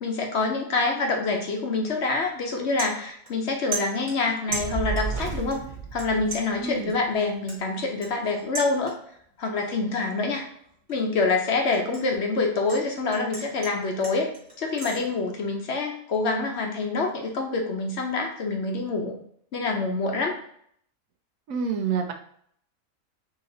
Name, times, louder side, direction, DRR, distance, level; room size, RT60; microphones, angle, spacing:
voice 1, 0.0-8.9 9.4-10.4 10.9-14.3 14.6-19.1 19.5-20.3, left 3 dB, 60° left, 2 dB, 1.0 m, -26 dB
sound 1, 1.9-2.1 2.4-3.5 3.7-5.2 5.5-6.0 6.3-9.2 9.6-9.9 10.3-12.8 13.1-15.0, right 4 dB, 30° right, 1.5 m, -37 dB
Fire, 4.5-6.9, right 5 dB, 50° right, 0.6 m, -32 dB
voice 2, 6.6-6.9 21.5-22.1, right 6 dB, 75° right, 5 dB, 1.1 m, -27 dB
4.1 x 2.8 x 3.8 m, 0.65 s
omnidirectional pair, 1.4 m